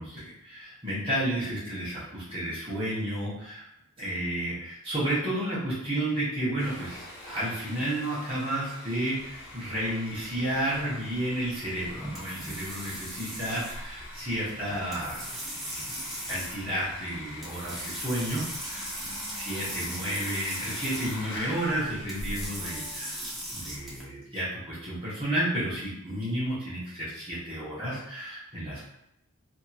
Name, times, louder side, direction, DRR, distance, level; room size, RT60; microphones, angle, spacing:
voice 1, 0.0-3.7 4.0-15.2 15.7-23.2 23.5-28.8, right 1 dB, 25° right, -10 dB, 0.9 m, -32 dB
Sawing, 6.6-23.0, left 1 dB, 75° left, 0.8 m, -45 dB
sound 1, 9.2-24.0, equal, ahead, 0.5 m, -39 dB
2.8 x 2.7 x 2.3 m, 0.87 s
head